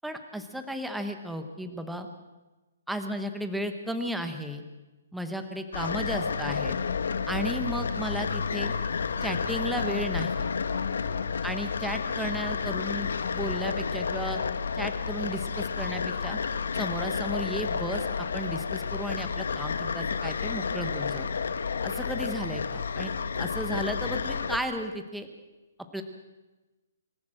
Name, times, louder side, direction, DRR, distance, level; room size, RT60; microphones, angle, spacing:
voice 1, 0.0-2.1 2.9-4.6 5.1-6.8 7.3-8.7 9.2-10.4 11.4-14.4 14.7-16.4 16.7-21.3 21.8-25.3 25.9-26.0, equal, ahead, 6 dB, 0.9 m, -34 dB
sound 1, 5.7-24.6, left 5 dB, 80° left, 1.3 m, -31 dB
25.5 x 13.5 x 7.5 m, 1.1 s
hypercardioid pair, 175°, 0 cm